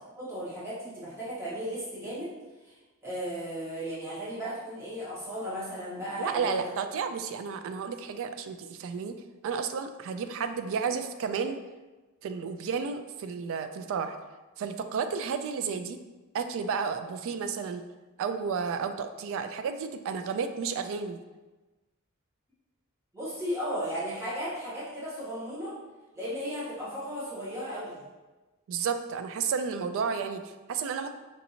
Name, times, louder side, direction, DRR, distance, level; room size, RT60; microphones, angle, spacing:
voice 1, 0.1-2.3 2.6-2.7 3.0-6.6 23.1-25.7 26.1-28.0, equal, 15° right, -10 dB, 1.2 m, -35 dB
voice 2, 6.2-11.6 12.2-14.2 14.6-16.0 16.3-17.8 18.2-21.2 28.7-31.1, right 6 dB, 60° right, 10 dB, 0.3 m, -32 dB
5.2 x 2.7 x 2.8 m, 1.2 s
head